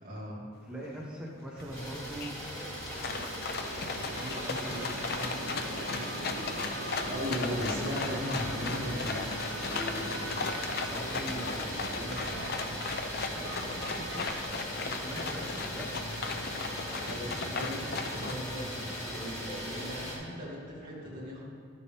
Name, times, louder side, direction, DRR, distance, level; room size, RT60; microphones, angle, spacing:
voice 1, 0.0-0.5 7.1-9.2 17.0-17.2 17.5-21.4, equal, 45° right, -7 dB, 2.5 m, -37 dB
voice 2, 0.6-3.4 3.9-7.2 9.5-10.5 10.8-12.6 13.2-16.4 16.8-17.2 19.1-19.5, equal, 5° right, -5 dB, 1.0 m, -44 dB
sound 1, 1.0-1.1 1.4-1.8 2.2-18.3, left 4 dB, 50° left, 0.6 m, -37 dB
sound 2, 1.6-14.4, right 2 dB, 75° right, 0.7 m, -43 dB
Idling, 1.7-20.2, equal, 15° left, 2.5 m, -39 dB
12.5 x 6.8 x 3.6 m, 2.2 s
head